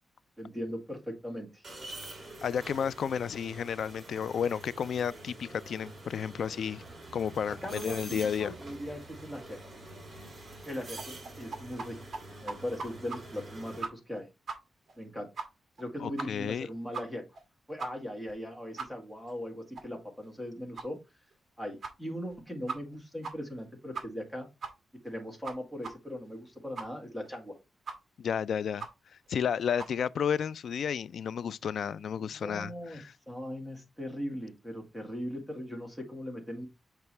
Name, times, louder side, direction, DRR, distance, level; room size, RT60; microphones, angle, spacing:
voice 1, 0.4-1.6 7.6-9.6 10.7-12.0 12.4-14.3 15.0-15.3 15.8-17.2 17.7-21.0 21.6-24.5 25.0-27.6 32.3-36.7, equal, 5° left, 1.8 m, -39 dB
sound 1, 1.6-13.8, right 2 dB, 30° right, 2.5 m, -46 dB
voice 2, 2.4-6.8 7.1-8.5 16.0-16.7 28.2-28.9 29.3-33.1, left 7 dB, 65° left, 0.3 m, -32 dB
sound 2, 11.0-11.9 12.1-12.2 12.5-13.2 13.5-13.6 13.8-14.2 14.5-14.6 14.9-15.0 15.4-15.5 15.8-15.9 16.2-16.5 16.9-17.0 17.4-17.5 17.8-17.9 18.3-18.4 18.8-18.9 19.3-19.4 19.8-19.9 20.2-20.3 20.8-20.9 21.3-21.4 21.8-21.9 22.3-22.4 22.7-23.0 23.2-23.3 23.6-23.7 23.9-24.3 24.6-24.7 25.1-25.2 25.4-25.5 25.8-25.9 26.2-26.3 26.8-26.9 27.2-27.3 27.9-28.0 28.3-28.4 28.8-28.9 29.3-29.4 29.8-29.9, right 4 dB, 50° right, 1.4 m, -38 dB
7.1 x 4.4 x 3.2 m
wide cardioid pair, 160°, 0 cm